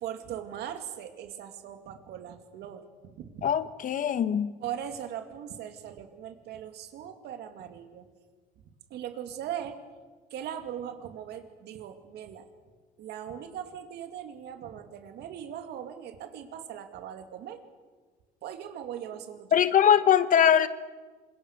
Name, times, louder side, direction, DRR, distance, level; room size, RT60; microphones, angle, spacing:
voice 1, 0.0-3.5 4.6-8.1 8.9-9.8 10.3-12.5 13.0-17.6 18.4-19.6, right 9 dB, 75° right, 2.5 m, -39 dB
voice 2, 3.4-4.5 19.5-20.7, left 9 dB, 50° left, 1.1 m, -22 dB
25.0 x 21.5 x 6.6 m
cardioid pair, 110°, 17 cm